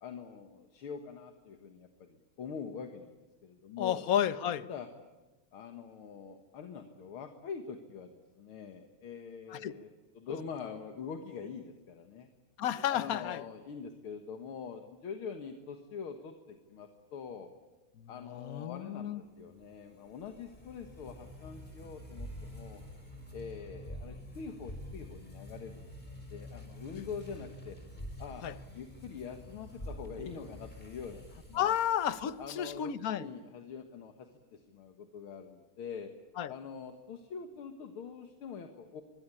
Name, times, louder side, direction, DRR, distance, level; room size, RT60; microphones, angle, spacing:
voice 1, 0.0-4.0 4.7-4.9 5.5-9.9 10.1-12.3 12.9-17.5 18.1-22.8 23.3-26.0 26.3-27.8 28.2-28.5 28.7-31.7 32.4-36.1 36.5-39.0, left 6 dB, 75° left, 6 dB, 2.4 m, -44 dB
voice 2, 3.8-4.7 9.5-9.7 12.6-13.4 18.0-19.2 28.4-28.5 31.5-33.3 36.4-36.5, left 10 dB, 50° left, 14 dB, 1.2 m, -32 dB
sound 1, 19.4-32.8, equal, 20° left, 5.9 m, -47 dB
25.0 x 23.0 x 10.0 m, 1.2 s
omnidirectional pair, 2.3 m